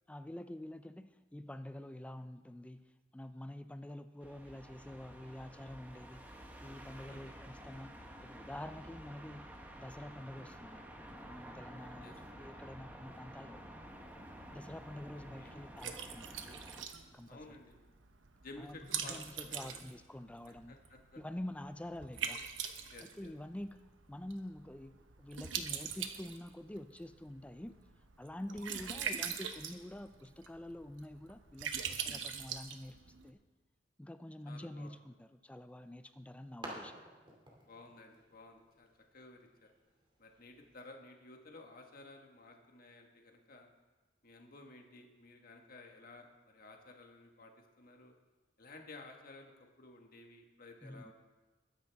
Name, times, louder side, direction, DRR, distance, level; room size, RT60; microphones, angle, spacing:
voice 1, 0.1-9.5 9.8-13.7 14.5-16.4 17.1-17.4 18.6-20.8 21.2-22.4 23.0-23.8 24.1-27.8 28.2-33.4 34.0-37.0 50.8-51.0, left 1 dB, 5° left, 10 dB, 0.4 m, -47 dB
sound 1, 4.2-16.9, equal, 10° right, 1.1 m, -51 dB
Liquid, 13.9-33.3, right 7 dB, 85° right, 1.0 m, -44 dB
voice 2, 15.1-15.6 17.3-17.8 18.4-19.8 20.7-21.2 22.9-23.3 28.5-28.9 34.5-34.9 37.6-39.7 40.2-43.7 44.2-48.1 48.6-49.5 49.8-51.1, left 2 dB, 50° left, 2 dB, 1.5 m, -54 dB
sound 2, 35.7-40.8, right 1 dB, 25° right, 2.7 m, -53 dB
21.0 x 10.0 x 3.5 m, 1.2 s
head